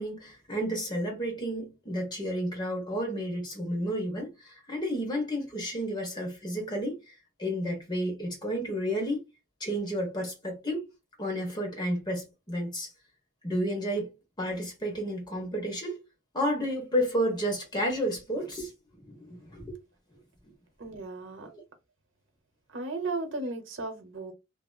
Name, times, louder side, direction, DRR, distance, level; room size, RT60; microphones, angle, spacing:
voice 1, 0.0-7.1 7.4-9.2 9.6-10.8 11.2-12.9 13.4-14.1 14.4-16.0 16.3-19.8 21.4-21.6, equal, 20° left, 1.1 m, -31 dB
voice 2, 20.8-21.5 22.7-24.3, right 3 dB, 75° right, 0.8 m, -35 dB
2.8 x 2.8 x 2.3 m
head